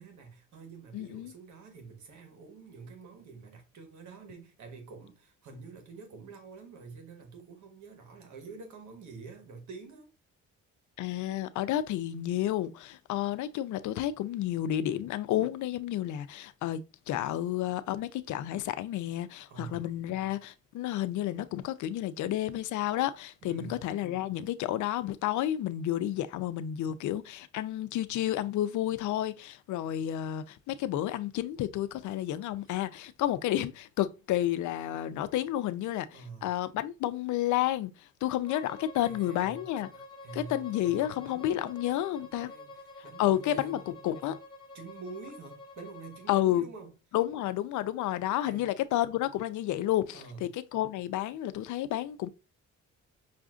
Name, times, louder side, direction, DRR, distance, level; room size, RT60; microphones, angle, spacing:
voice 1, 0.0-10.1 19.5-19.9 23.4-23.8 36.1-36.5 38.9-39.7 40.2-40.7 41.2-43.9 44.7-46.9 48.4-48.8 50.1-50.4, right 4 dB, 70° right, 1.2 m, -47 dB
voice 2, 0.9-1.3 11.0-37.9 38.2-39.9 40.3-42.5 43.2-44.4 46.3-46.6 47.1-52.3, left 13 dB, 75° left, 0.5 m, -31 dB
Bowed string instrument, 38.4-46.5, left 2 dB, 15° left, 1.2 m, -48 dB
5.7 x 2.5 x 2.4 m
cardioid pair, 90°, 30 cm